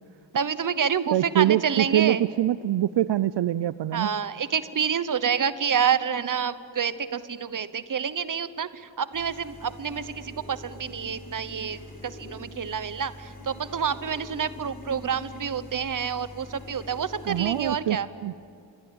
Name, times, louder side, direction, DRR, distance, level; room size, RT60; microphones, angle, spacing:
voice 1, 0.3-2.2 3.9-18.1, right 7 dB, 45° right, 14 dB, 1.0 m, -28 dB
voice 2, 1.1-4.1 17.3-18.3, right 12 dB, 70° right, 16 dB, 0.6 m, -24 dB
sound 1, 9.1-17.8, left 1 dB, 20° left, 5.6 m, -44 dB
28.0 x 23.0 x 8.8 m, 2.5 s
wide cardioid pair, 155°, 44 cm